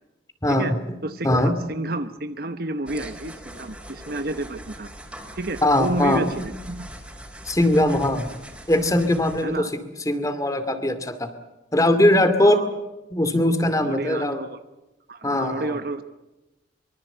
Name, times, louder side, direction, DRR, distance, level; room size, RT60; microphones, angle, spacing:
voice 1, 0.4-1.0 1.2-1.6 5.6-6.3 7.4-8.3 8.7-11.3 11.7-12.6 13.1-14.4 15.2-15.8, left 1 dB, 20° left, 10 dB, 2.4 m, -21 dB
voice 2, 1.0-4.9 5.3-6.9 9.4-9.7 12.4-12.7 13.8-14.6 15.1-16.0, right 2 dB, 55° right, 10 dB, 1.0 m, -30 dB
sound 1, 2.9-9.4, equal, 5° right, 4.3 m, -41 dB
24.5 x 24.0 x 8.0 m, 1.0 s
head